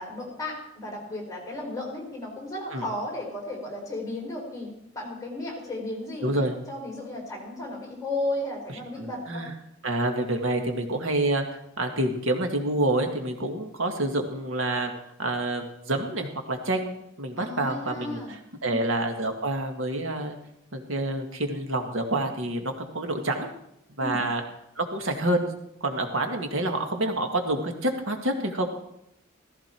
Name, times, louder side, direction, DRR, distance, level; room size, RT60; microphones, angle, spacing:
voice 1, 0.0-4.7 4.9-9.4 17.4-18.3 18.6-18.8 24.0-24.2, left 1 dB, 15° left, -1 dB, 4.5 m, -34 dB
voice 2, 6.2-6.6 9.0-9.5 9.8-11.4 11.8-14.9 15.2-18.2 18.6-20.4 20.7-23.5 24.0-24.4 24.8-25.5 25.8-28.7, right 1 dB, 70° right, 4 dB, 1.9 m, -27 dB
16.0 x 15.0 x 4.5 m, 0.80 s
head